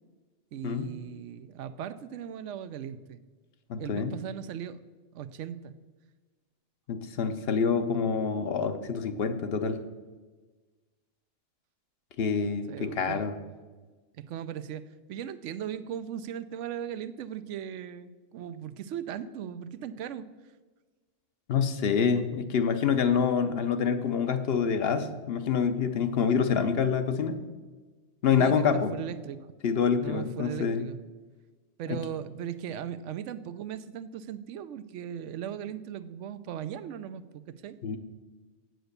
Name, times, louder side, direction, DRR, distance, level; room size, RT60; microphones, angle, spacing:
voice 1, 0.5-3.2 3.8-4.8 5.1-5.7 12.7-13.3 14.1-14.8 15.1-20.3 28.3-29.5 30.0-31.0 31.8-37.8, right 9 dB, 85° right, 13 dB, 0.9 m, -38 dB
voice 2, 3.7-4.1 6.9-9.8 12.2-13.3 21.5-27.4 28.2-28.9 29.6-30.8 31.9-32.0 37.8-38.0, left 6 dB, 60° left, 9 dB, 0.9 m, -26 dB
8.0 x 7.8 x 6.6 m, 1.3 s
omnidirectional pair, 1.2 m